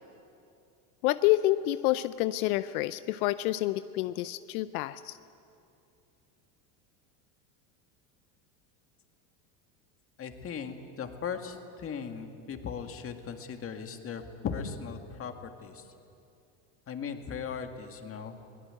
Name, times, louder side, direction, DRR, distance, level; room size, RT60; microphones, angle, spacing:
voice 1, 1.0-5.2, left 16 dB, 80° left, 14 dB, 0.7 m, -28 dB
voice 2, 10.2-15.9 16.9-18.5, left 6 dB, 30° left, 6 dB, 2.0 m, -38 dB
22.5 x 17.5 x 9.0 m, 2.7 s
supercardioid pair, 120°, 43 cm